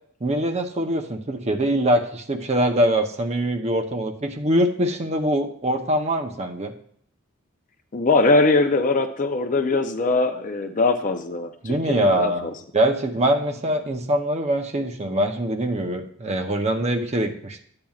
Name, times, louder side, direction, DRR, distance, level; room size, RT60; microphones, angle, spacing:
voice 1, 0.2-6.7 11.6-17.6, right 1 dB, 30° right, 4 dB, 0.8 m, -23 dB
voice 2, 7.9-12.5, left 3 dB, 40° left, 6 dB, 0.6 m, -21 dB
12.0 x 8.7 x 2.4 m, 0.64 s
head